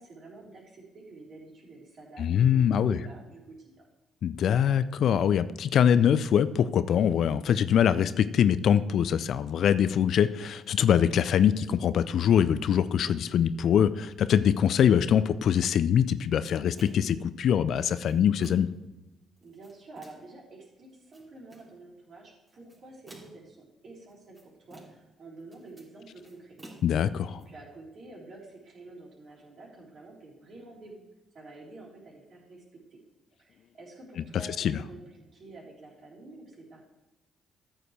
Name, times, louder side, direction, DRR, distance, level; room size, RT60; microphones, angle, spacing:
voice 1, 0.0-3.9 19.4-26.6 27.2-31.0 31.3-32.6 32.9-33.0 33.4-35.0 35.3-36.8, right 2 dB, 50° right, -4 dB, 4.1 m, -48 dB
voice 2, 2.2-3.0 4.2-18.7 26.8-27.4 34.6-34.8, left 9 dB, 60° left, 15 dB, 0.4 m, -23 dB
sound 1, 16.4-17.2 17.8-18.8 19.4-20.3 20.9-21.8 22.5-23.5 24.1-25.1 25.4-27.4, right 1 dB, 30° right, 3.4 m, -53 dB
13.5 x 7.8 x 3.4 m, 1.0 s
hypercardioid pair, 45°, 0 cm